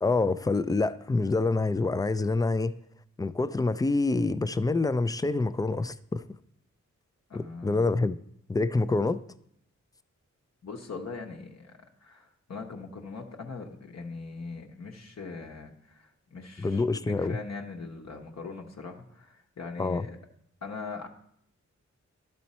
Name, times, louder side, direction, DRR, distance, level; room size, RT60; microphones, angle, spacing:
voice 1, 0.0-2.8 3.2-6.2 7.3-8.2 8.5-9.2 16.6-17.4 19.8-20.1, left 3 dB, 15° left, 14 dB, 0.3 m, -26 dB
voice 2, 7.3-7.9 10.6-20.2 20.6-21.1, left 4 dB, 60° left, 1 dB, 1.0 m, -41 dB
11.5 x 4.3 x 4.2 m, 0.70 s
cardioid pair, 65°, 30 cm